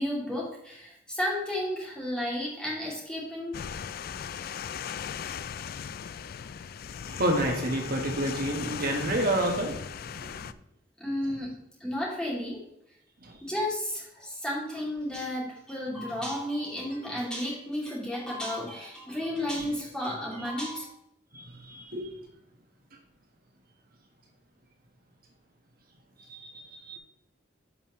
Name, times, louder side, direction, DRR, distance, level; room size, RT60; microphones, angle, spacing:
voice 1, 0.0-3.6 4.8-4.9 11.0-11.5 11.8-12.6 13.4-20.8, left 1 dB, 5° left, -5 dB, 2.9 m, -32 dB
sound 1, 3.5-10.5, left 7 dB, 55° left, 0.4 m, -38 dB
voice 2, 7.1-10.5 13.2-13.4 19.5-19.6 21.3-22.1 26.3-27.0, right 1 dB, 50° right, 2 dB, 1.7 m, -30 dB
11.0 x 5.5 x 3.2 m, 0.78 s
head